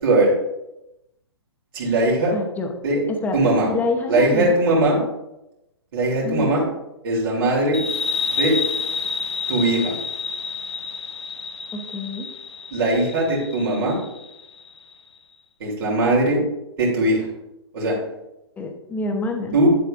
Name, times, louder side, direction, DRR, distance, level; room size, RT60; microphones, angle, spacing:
voice 1, 0.0-0.3 1.7-2.3 2.8-3.0 3.3-3.7 4.1-5.0 5.9-6.6 7.0-7.8 8.3-8.6 9.5-9.9 12.7-14.0 15.6-16.4 16.8-17.3 17.7-18.0 19.5-19.7, right 2 dB, 55° right, -4 dB, 3.1 m, -20 dB
voice 2, 2.3-2.7 3.1-3.4 3.7-4.6 6.2-6.6 11.7-12.3 18.6-19.6, left 3 dB, 10° left, 3 dB, 1.0 m, -27 dB
sound 1, 7.7-14.9, left 5 dB, 80° left, 0.6 m, -29 dB
9.8 x 7.5 x 2.6 m, 0.90 s
figure-of-eight pair, 120°, 14 cm